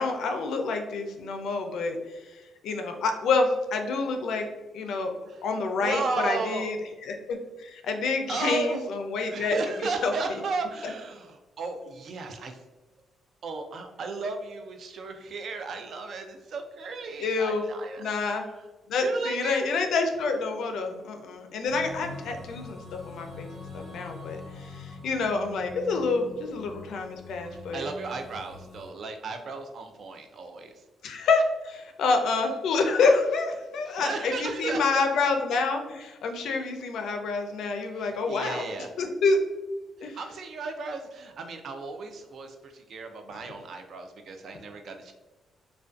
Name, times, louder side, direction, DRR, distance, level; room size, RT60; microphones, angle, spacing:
voice 1, 0.0-2.0 2.3-4.5 4.7-5.1 5.4-6.8 7.0-10.1 10.8-10.9 17.2-17.6 18.0-18.4 18.9-23.5 23.7-27.8 31.0-38.7 39.0-39.4 40.0-40.2 43.4-43.5, left 3 dB, 75° left, 4 dB, 0.4 m, -27 dB
voice 2, 5.8-6.7 8.3-8.9 9.2-12.6 13.4-18.0 19.0-19.7 27.5-30.7 33.9-35.0 38.0-38.9 40.1-45.1, right 3 dB, 50° right, 5 dB, 0.3 m, -35 dB
sound 1, 21.7-28.9, left 3 dB, 15° right, 1.2 m, -44 dB
2.4 x 2.2 x 2.3 m, 1.2 s
cardioid pair, 150°, 0 cm